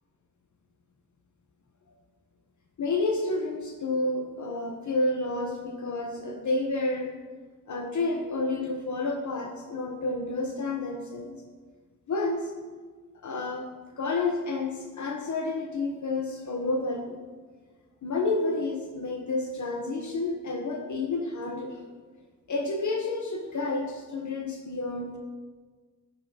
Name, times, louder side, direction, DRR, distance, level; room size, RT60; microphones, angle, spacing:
voice 1, 2.8-7.1 7.7-11.3 12.1-12.5 13.2-17.2 18.0-21.8 22.5-25.2, left 2 dB, 65° left, 2 dB, 0.9 m, -30 dB
15.0 x 5.5 x 2.8 m, 1.4 s
wide cardioid pair, 115°, 32 cm